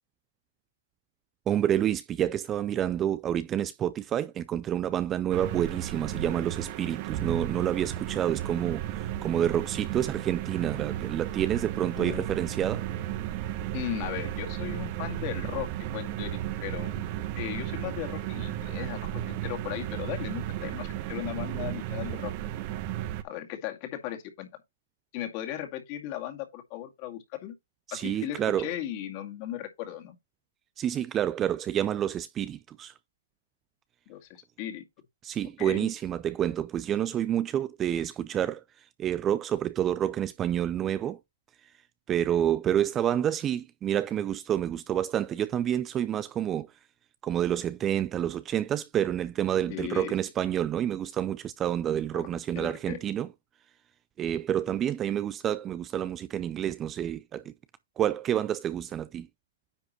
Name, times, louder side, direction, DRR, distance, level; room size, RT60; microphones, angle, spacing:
voice 1, 1.5-12.9 27.9-28.8 30.8-32.9 35.2-41.2 41.6-41.7 42.1-46.8 47.2-53.3 54.2-57.5 58.0-59.3, right 10 dB, 20° right, 0.4 m, -29 dB
sound 1, 5.3-23.2, right 12 dB, 35° right, 1.0 m, -34 dB
voice 2, 13.7-17.0 17.4-22.3 23.2-24.5 25.1-27.6 27.9-30.2 34.1-34.9 35.6-35.9 49.7-50.1 52.1-52.3 52.6-53.0, left 12 dB, 35° left, 2.1 m, -37 dB
9.9 x 5.8 x 3.0 m
hypercardioid pair, 140°, 0 cm